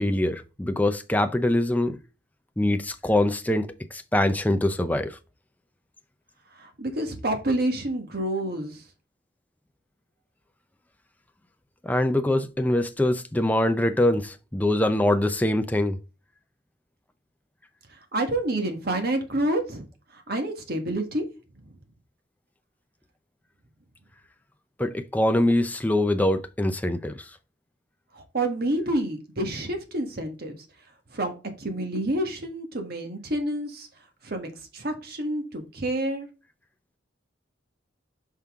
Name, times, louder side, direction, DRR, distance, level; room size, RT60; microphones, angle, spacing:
voice 1, 0.0-2.0 2.6-5.2 11.8-16.0 24.8-27.3, left 1 dB, 10° left, 0.6 m, -24 dB
voice 2, 6.5-8.8 17.9-19.8 20.1-21.2 28.1-30.6 31.1-31.3 31.6-33.9 34.2-36.3, right 1 dB, 50° right, 1.5 m, -28 dB
5.8 x 5.4 x 3.6 m
head